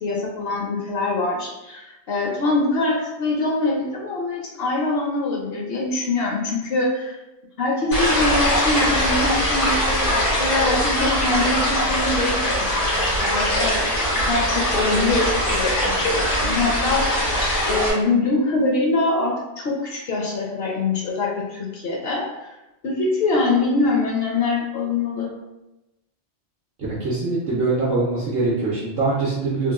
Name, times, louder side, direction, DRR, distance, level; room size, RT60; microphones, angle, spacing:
voice 1, 0.0-7.1 7.6-13.8 14.2-17.3 17.6-22.5 22.8-25.3, left 3 dB, 65° left, -1 dB, 0.7 m, -24 dB
sound 1, 7.9-17.9, equal, 90° left, 1.3 m, -21 dB
voice 2, 27.0-29.7, right 3 dB, 60° right, -7 dB, 0.8 m, -23 dB
2.9 x 2.2 x 2.3 m, 0.97 s
omnidirectional pair, 1.2 m